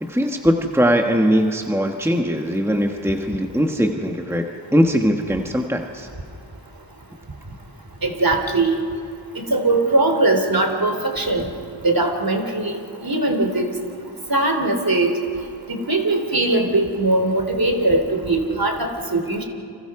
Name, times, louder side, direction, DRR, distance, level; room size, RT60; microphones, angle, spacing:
voice 1, 0.0-6.1, equal, 5° right, 4 dB, 1.4 m, -20 dB
voice 2, 8.0-8.8 9.3-11.5 11.8-12.7 13.0-13.7 14.3-15.1 15.7-19.4, right 2 dB, 45° right, 4 dB, 3.2 m, -20 dB
29.0 x 26.0 x 4.8 m, 2.5 s
wide cardioid pair, 50°, 47 cm